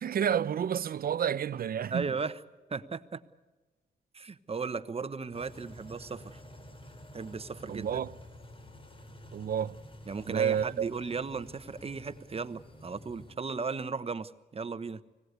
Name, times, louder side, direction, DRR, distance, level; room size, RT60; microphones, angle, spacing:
voice 1, 0.0-2.1 7.7-8.1 9.3-9.8 10.3-10.9, right 8 dB, 60° right, 0.7 m, -30 dB
voice 2, 1.9-2.4 2.7-3.2 4.1-6.4 7.1-7.9 10.1-15.0, right 4 dB, 35° right, 1.1 m, -36 dB
sound 1, 5.3-13.4, left 1 dB, 30° left, 2.8 m, -50 dB
26.0 x 17.5 x 8.2 m
cardioid pair, 80°, 17 cm